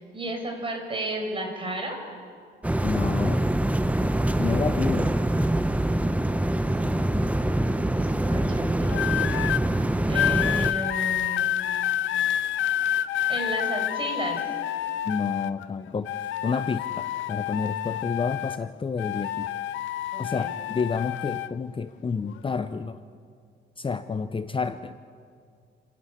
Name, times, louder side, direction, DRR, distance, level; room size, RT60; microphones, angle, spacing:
voice 1, 0.0-2.0 6.0-9.3 10.1-11.7 13.3-14.4 20.1-20.5, right 1 dB, 25° right, 3 dB, 5.3 m, -34 dB
sound 1, 2.6-10.7, right 1 dB, 5° right, 0.9 m, -24 dB
voice 2, 2.8-3.4 4.4-5.2 15.0-16.1 16.4-19.5 20.2-23.0 23.8-24.9, left 5 dB, 25° left, 11 dB, 0.6 m, -29 dB
sound 2, 8.9-9.6 10.1-15.7 16.0-18.7 19.0-21.5 22.3-22.6, left 11 dB, 75° left, 0.7 m, -28 dB
29.0 x 11.5 x 8.5 m, 2.2 s
cardioid pair, 90°, 20 cm